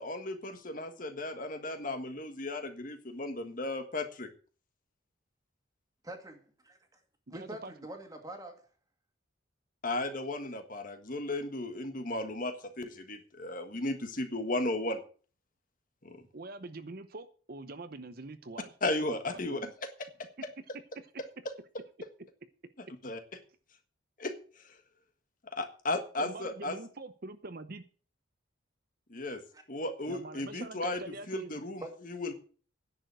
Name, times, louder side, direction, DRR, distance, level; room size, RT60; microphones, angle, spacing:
voice 1, 0.0-4.3 9.8-15.0 16.0-16.2 18.8-19.6 23.0-23.2 24.2-24.3 24.6-24.8 25.5-26.8 29.1-29.4 29.7-31.0 31.3-32.3, left 2 dB, 45° left, 7 dB, 1.6 m, -35 dB
voice 2, 6.0-7.0 7.3-8.7 29.5-29.6 31.8-31.9, right 1 dB, 20° right, 5 dB, 2.1 m, -45 dB
voice 3, 7.3-7.7 16.3-18.7 19.1-19.7 26.2-27.8 30.1-31.5, right 2 dB, 50° right, 11 dB, 0.8 m, -44 dB
10.5 x 7.1 x 7.9 m, 0.40 s
head